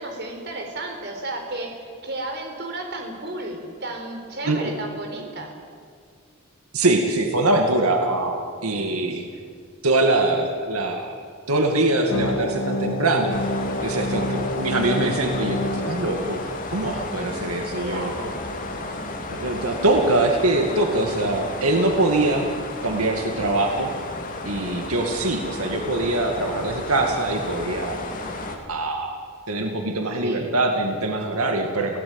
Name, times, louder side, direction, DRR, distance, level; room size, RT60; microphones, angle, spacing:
voice 1, 0.0-5.5 13.9-14.4 17.7-18.4 30.2-30.5, right 2 dB, 50° right, 3 dB, 4.4 m, -33 dB
voice 2, 6.7-9.2 9.8-11.2 11.5-13.4 13.8-18.1 19.3-22.5 22.8-23.9 24.5-28.0 28.7-29.1 29.5-32.0, right 2 dB, 90° right, 3 dB, 2.2 m, -23 dB
sound 1, 12.1-17.1, left 1 dB, 65° left, 2.0 m, -28 dB
sound 2, 13.3-28.6, left 2 dB, 40° left, 2.7 m, -33 dB
29.0 x 17.0 x 8.9 m, 2.1 s
head